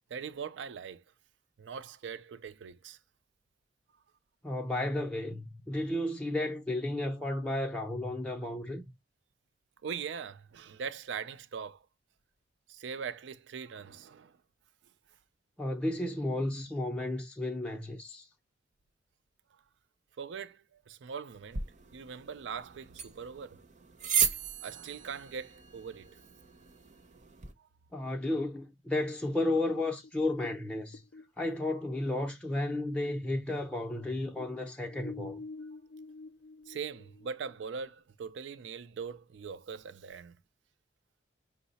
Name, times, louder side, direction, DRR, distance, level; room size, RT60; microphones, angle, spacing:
voice 1, 0.1-1.0 1.6-3.0 9.8-11.8 12.7-14.4 20.2-21.6 21.9-23.6 24.2-26.2 27.6-27.7 36.7-40.3, right 6 dB, 80° right, 0.4 m, -41 dB
voice 2, 4.4-8.8 15.6-18.3 27.9-31.0 31.4-35.4, left 1 dB, 5° left, 0.5 m, -33 dB
sound 1, 21.5-27.5, right 7 dB, 40° right, 0.6 m, -36 dB
sound 2, 29.7-33.2 33.5-37.6, left 3 dB, 65° left, 0.4 m, -47 dB
5.5 x 2.0 x 4.0 m
head